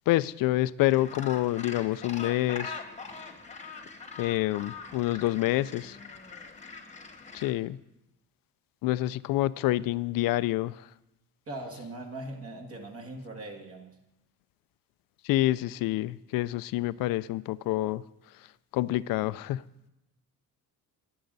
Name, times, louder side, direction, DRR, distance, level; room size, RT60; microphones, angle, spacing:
voice 1, 0.1-2.8 4.2-6.0 7.3-7.8 8.8-10.9 15.2-18.0 18.3-18.5 18.7-19.6, left 16 dB, 70° left, 18 dB, 0.5 m, -27 dB
Gull seagull, 0.8-7.5, left 4 dB, 20° left, 1.3 m, -43 dB
voice 2, 11.5-14.0, right 2 dB, 40° right, 2 dB, 2.1 m, -40 dB
21.5 x 7.8 x 4.0 m, 0.92 s
cardioid pair, 135°, 35 cm